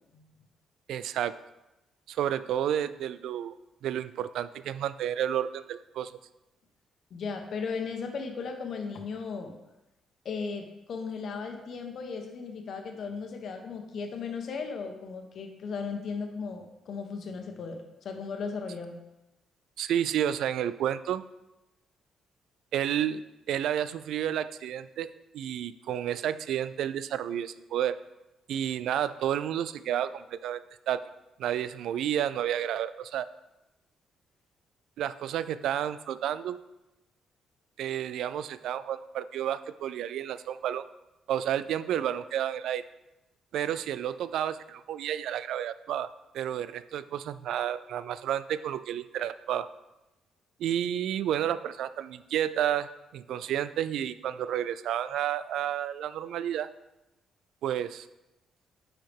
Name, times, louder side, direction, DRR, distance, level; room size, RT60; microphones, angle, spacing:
voice 1, 0.9-1.4 2.1-3.5 3.8-6.1 19.8-21.2 22.7-25.1 25.3-28.0 28.5-30.6 30.9-31.0 31.4-33.3 35.0-36.6 37.8-40.8 41.3-42.8 43.5-46.1 46.3-49.7 50.6-56.7 57.6-58.1, right 10 dB, 80° right, 14 dB, 0.3 m, -31 dB
voice 2, 7.1-9.5 10.2-19.0, left 5 dB, 60° left, 5 dB, 1.1 m, -36 dB
9.4 x 5.7 x 3.6 m, 0.96 s
cardioid pair, 90°, 0 cm